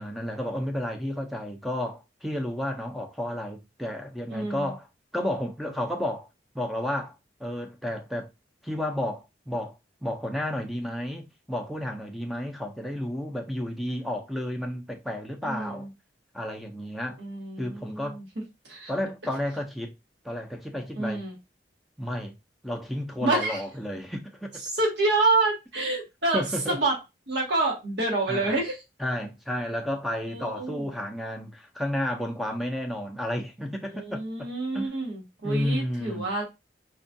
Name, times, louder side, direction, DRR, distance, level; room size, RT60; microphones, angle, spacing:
voice 1, 0.0-4.9 5.1-6.3 6.5-8.3 8.6-9.7 10.0-15.9 16.3-17.2 17.6-18.2 18.9-19.9 20.2-21.2 22.0-22.3 22.6-24.6 26.3-26.8 28.3-28.6 29.0-34.9 35.4-36.3, left 1 dB, ahead, 0.5 m, -32 dB
voice 2, 4.3-4.7 15.4-15.9 17.2-18.2 18.7-18.9 20.9-21.3 23.2-23.6 24.7-27.0 27.3-28.8 30.3-30.9 33.8-36.4, right 2 dB, 70° right, 1.4 m, -27 dB
4.4 x 2.4 x 2.6 m
head